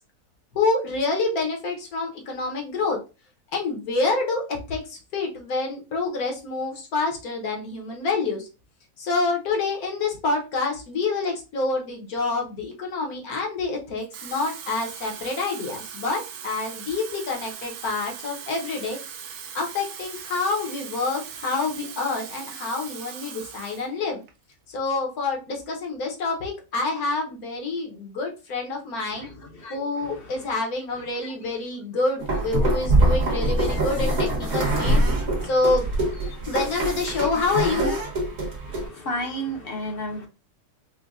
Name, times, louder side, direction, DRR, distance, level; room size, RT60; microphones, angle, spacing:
voice 1, 0.5-3.0 3.5-8.5 9.0-19.0 19.5-24.2 24.7-29.3 29.7-35.0 35.4-35.8 36.5-38.0, left 3 dB, 75° left, 1.4 m, -27 dB
Water tap faucet / Fill (with liquid), 14.0-23.9 24.3-24.5, right 8 dB, 80° right, 1.1 m, -39 dB
voice 2, 29.1-30.4 31.2-31.3 33.0-33.1 35.0-35.5 36.2-36.3 38.7-40.3, equal, 50° left, 0.8 m, -34 dB
sound 1, 32.2-38.9, right 1 dB, 50° right, 1.4 m, -24 dB
5.0 x 2.1 x 2.4 m
omnidirectional pair, 1.6 m